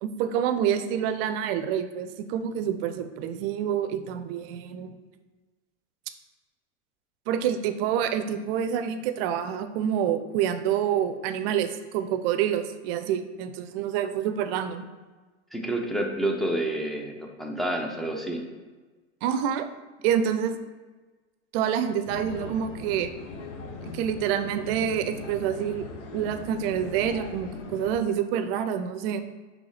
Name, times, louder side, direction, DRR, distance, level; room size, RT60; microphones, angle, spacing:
voice 1, 0.0-5.0 7.3-14.8 19.2-19.7 20.0-20.6 21.5-23.1 23.9-25.9 26.1-29.2, right 9 dB, 55° right, 10 dB, 0.5 m, -27 dB
voice 2, 15.5-18.4, right 1 dB, ahead, 1 dB, 0.4 m, -29 dB
sound 1, 22.1-28.0, left 3 dB, 80° left, 0.8 m, -39 dB
5.2 x 3.1 x 3.2 m, 1.3 s
hypercardioid pair, 110°, 36 cm